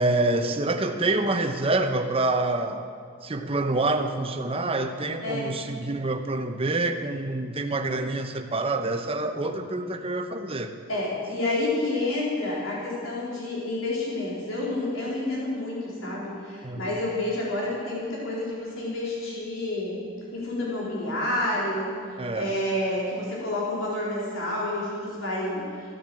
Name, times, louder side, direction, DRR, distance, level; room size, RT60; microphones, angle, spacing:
voice 1, 0.0-2.8 3.2-10.7 16.6-17.0 22.2-22.5, right 2 dB, 30° right, 6 dB, 0.9 m, -27 dB
voice 2, 10.9-20.0 20.3-21.9 22.3-25.7, left 1 dB, 85° left, -5 dB, 4.0 m, -29 dB
15.5 x 10.5 x 7.7 m, 2.2 s
head